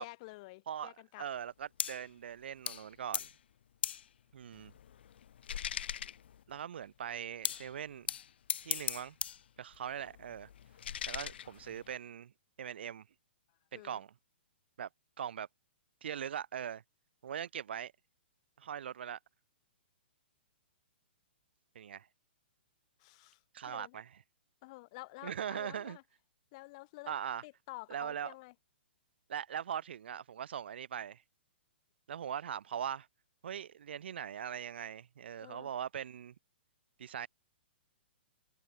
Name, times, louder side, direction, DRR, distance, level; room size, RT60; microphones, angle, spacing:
voice 1, 0.0-1.2 13.7-14.0 23.0-24.0 24.6-26.0 26.5-27.2 27.4-28.5 35.4-35.7, left 24 dB, 35° left, 2.9 m, -50 dB
voice 2, 1.2-3.3 4.3-4.7 6.5-8.1 8.6-9.1 9.6-10.5 11.0-12.3 12.6-13.0 13.7-14.1 14.8-14.9 15.2-15.5 16.0-16.8 17.2-17.9 18.6-19.2 21.7-22.1 23.5-24.1 25.2-26.0 27.1-27.4 27.9-28.3 29.3-31.2 32.1-33.1 33.4-36.3 37.0-37.3, right 9 dB, 70° right, 1.8 m, -41 dB
sound 1, 1.8-2.1 2.7-2.9 3.1-3.4 3.8-4.1 4.5-6.6 7.4-7.7 8.1-9.4 9.7-12.0, left 9 dB, 65° left, 0.9 m, -39 dB
hypercardioid pair, 160°, 6 cm